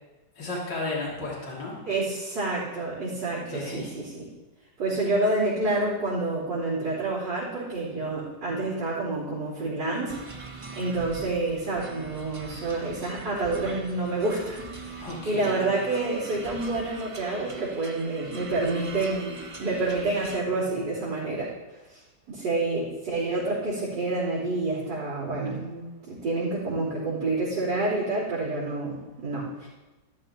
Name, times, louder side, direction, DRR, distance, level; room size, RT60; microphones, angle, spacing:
voice 1, 0.4-1.7 3.5-3.9 15.0-15.6, left 2 dB, 75° left, -4 dB, 2.9 m, -33 dB
voice 2, 1.8-4.3 4.8-10.2 10.7-21.5 21.9-29.7, right 2 dB, 80° right, -11 dB, 4.2 m, -28 dB
sound 1, 10.1-20.4, right 4 dB, 35° right, 0.5 m, -42 dB
14.0 x 13.0 x 2.9 m, 1.2 s
omnidirectional pair, 1.9 m